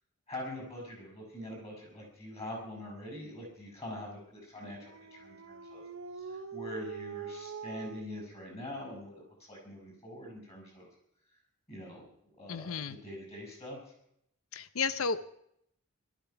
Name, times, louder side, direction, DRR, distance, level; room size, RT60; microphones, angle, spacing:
voice 1, 0.3-5.8 6.1-10.9 11.7-12.1 12.4-13.8, left 1 dB, 30° left, 0 dB, 6.0 m, -44 dB
Dog, 4.6-8.0, right 5 dB, 70° right, 0.8 m, -43 dB
voice 2, 12.5-13.0 14.5-15.4, left 5 dB, 75° left, 14 dB, 0.7 m, -33 dB
18.0 x 12.5 x 5.8 m, 0.74 s
head